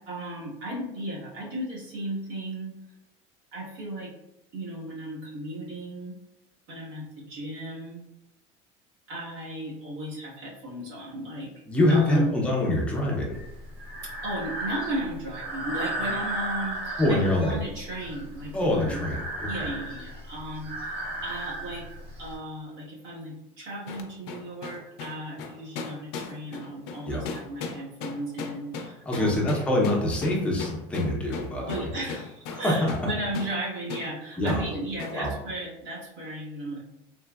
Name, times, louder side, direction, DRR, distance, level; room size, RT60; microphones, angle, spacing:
voice 1, 0.0-2.7 3.5-4.1 4.5-6.1 6.7-8.0 9.1-11.6 11.9-12.4 14.2-19.0 19.4-21.9 22.2-29.5 31.6-36.8, right 1 dB, 90° right, -6 dB, 1.2 m, -35 dB
voice 2, 11.7-13.4 17.0-17.6 18.5-19.7 27.0-27.3 29.1-31.9 32.5-32.9 34.4-34.6 35.1-35.3, left 1 dB, 10° left, -3 dB, 0.5 m, -25 dB
Breathing, 13.3-22.4, right 1 dB, 45° right, 0.6 m, -35 dB
sound 1, 23.9-33.1 33.3-33.6 33.9-34.1 34.5-34.7 35.0-35.2, left 5 dB, 90° left, 0.4 m, -37 dB
3.3 x 2.0 x 2.2 m, 0.91 s
cardioid pair, 170°, 14 cm